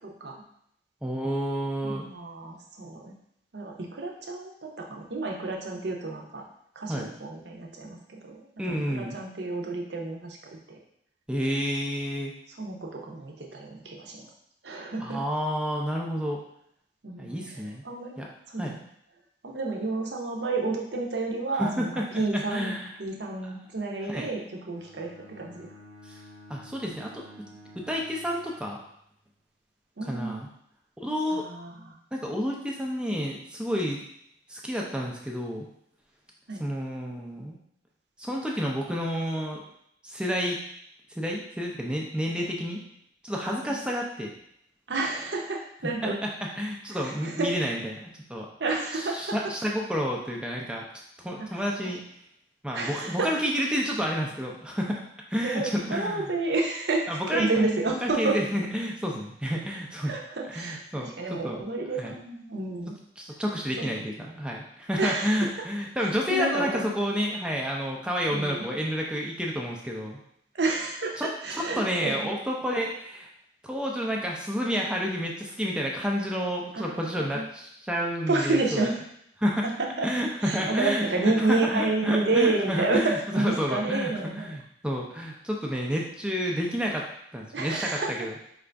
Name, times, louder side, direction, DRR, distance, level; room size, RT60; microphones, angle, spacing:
voice 1, 0.0-0.3 1.8-3.1 3.5-6.4 6.8-10.4 12.6-14.3 14.6-15.2 17.0-18.2 18.5-18.8 19.4-25.1 25.4-25.7 30.0-30.4 31.3-31.9 36.5-36.6 42.4-42.5 43.7-43.8 44.9-46.2 46.9-47.5 48.6-49.4 51.4-51.6 52.7-53.3 55.4-58.4 60.1-62.9 63.8-63.9 65.0-65.7 66.0-66.9 68.3-68.7 70.5-72.3 76.7-77.4 78.3-79.0 79.6-80.1 80.4-84.5 87.5-88.3, right 3 dB, 60° right, 0 dB, 0.7 m, -30 dB
voice 2, 1.0-2.0 6.9-7.1 8.6-9.2 11.3-12.3 15.0-16.4 17.2-17.8 18.2-18.3 18.6-18.8 21.6-22.9 24.1-24.3 26.0-26.2 26.5-27.2 27.8-28.8 30.1-30.5 31.0-31.4 32.1-34.0 34.5-35.7 36.6-37.6 38.2-39.6 40.0-40.6 41.2-42.8 43.2-44.3 46.0-46.1 46.4-48.5 48.9-50.8 51.2-52.0 52.6-55.0 55.3-56.3 57.1-57.5 58.0-60.1 60.5-61.1 61.4-61.6 62.0-62.1 63.2-70.2 71.2-73.3 73.6-78.9 79.4-79.6 80.0-84.1 84.4-87.1 87.3-88.3, equal, 5° right, -1 dB, 0.4 m, -30 dB
Bowed string instrument, 24.8-29.0, equal, 90° right, 1.1 m, -50 dB
4.8 x 2.5 x 3.3 m, 0.73 s
head